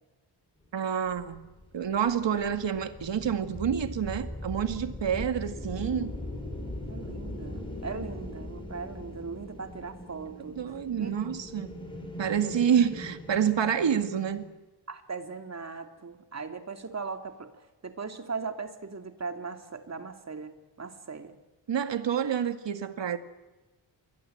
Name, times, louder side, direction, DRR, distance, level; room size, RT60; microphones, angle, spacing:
voice 1, 0.7-1.5 1.7-6.1 10.6-11.7 12.2-14.5 21.7-23.2, right 8 dB, 75° right, 2.1 m, -28 dB
sound 1, 1.1-14.4, left 1 dB, 10° left, 6.4 m, -40 dB
voice 2, 6.9-11.1 12.4-12.7 14.9-17.5 17.8-21.4, right 4 dB, 35° right, 2.6 m, -39 dB
28.0 x 23.0 x 7.9 m
wide cardioid pair, 155°, 44 cm